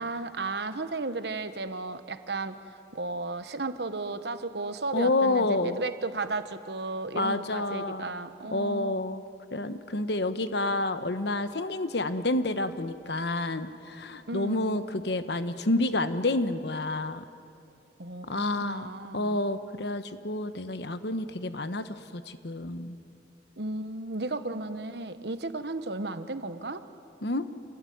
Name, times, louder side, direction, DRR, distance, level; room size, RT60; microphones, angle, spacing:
voice 1, 0.0-2.6 2.9-9.0 14.3-14.9 18.0-18.3 18.6-19.4 23.6-26.8, right 2 dB, 65° right, 10 dB, 1.2 m, -34 dB
voice 2, 4.9-5.8 7.1-8.0 8.5-9.2 9.5-17.2 18.3-22.9 27.2-27.5, left 2 dB, 65° left, 11 dB, 1.2 m, -29 dB
27.0 x 19.5 x 9.5 m, 2.7 s
head